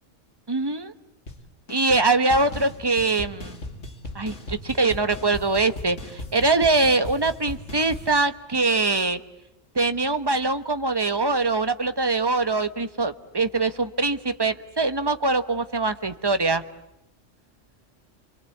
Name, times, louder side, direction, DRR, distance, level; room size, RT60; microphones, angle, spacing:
voice 1, 0.5-0.9 1.7-3.6 4.1-9.2 9.7-16.6, right 3 dB, 20° right, 10 dB, 1.0 m, -23 dB
sound 1, 1.3-1.4 1.7-2.0 2.3-8.1, left 1 dB, 70° left, 2.7 m, -37 dB
28.5 x 23.0 x 8.4 m, 0.87 s
omnidirectional pair, 1.3 m